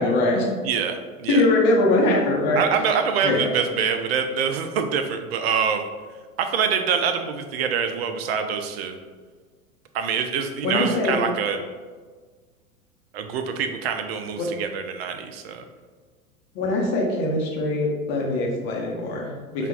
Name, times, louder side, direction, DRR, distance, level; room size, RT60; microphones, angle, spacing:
voice 1, 0.0-0.5 1.3-2.6 3.2-3.4 10.6-11.2 14.4-14.5 16.5-19.7, left 2 dB, 40° left, -2 dB, 1.0 m, -22 dB
voice 2, 0.6-1.5 2.6-5.9 6.4-9.0 9.9-11.6 13.1-15.6, right 6 dB, 45° right, 6 dB, 0.5 m, -25 dB
5.6 x 2.5 x 2.3 m, 1.5 s
figure-of-eight pair, 95°, 43 cm